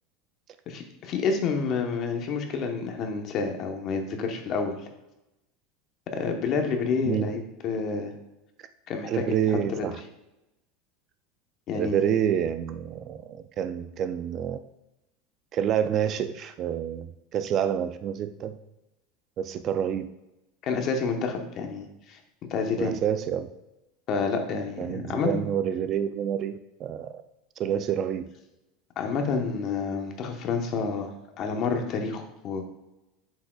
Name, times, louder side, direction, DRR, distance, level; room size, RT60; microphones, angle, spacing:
voice 1, 0.7-4.9 6.1-8.1 8.9-9.3 9.7-10.0 11.7-12.1 20.6-22.2 22.5-22.9 24.1-25.3 29.0-32.6, left 5 dB, 35° left, 4 dB, 1.0 m, -29 dB
voice 2, 9.1-10.0 11.7-14.6 15.5-18.6 19.4-20.1 22.8-23.5 24.8-27.2 27.6-28.3, right 9 dB, 30° right, 11 dB, 0.3 m, -28 dB
8.1 x 6.3 x 2.3 m, 0.95 s
supercardioid pair, 160°, 0 cm